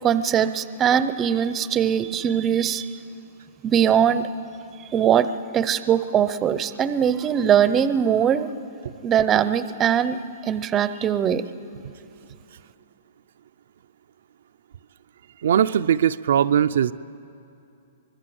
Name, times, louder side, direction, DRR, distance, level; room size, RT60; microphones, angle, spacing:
voice 1, 0.0-2.9 3.6-4.3 4.9-8.5 9.0-11.4, right 8 dB, 15° right, 13 dB, 0.6 m, -21 dB
voice 2, 15.4-16.9, right 9 dB, 65° right, 10 dB, 0.4 m, -20 dB
24.5 x 21.5 x 7.8 m, 2.7 s
hypercardioid pair, 165°, 0 cm